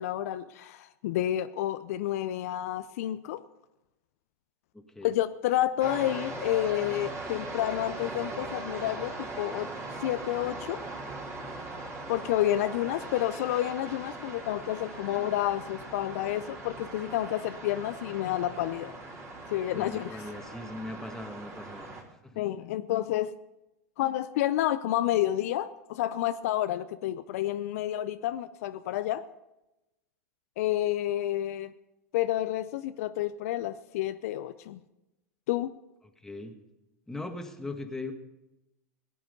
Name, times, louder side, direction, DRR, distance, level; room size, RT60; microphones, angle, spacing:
voice 1, 0.0-3.4 5.0-9.7 10.0-10.8 12.1-18.9 19.5-20.1 22.4-23.3 24.0-29.3 30.6-31.7 32.1-34.8 35.5-35.7, left 13 dB, 65° left, 12 dB, 0.5 m, -30 dB
voice 2, 4.7-5.1 19.7-21.9 22.2-22.4 36.2-36.5 37.1-38.1, left 2 dB, 5° left, 4 dB, 1.8 m, -39 dB
sound 1, 5.8-22.0, right 2 dB, 30° right, 4.0 m, -40 dB
17.0 x 9.5 x 5.3 m, 0.95 s
hypercardioid pair, 95°, 8 cm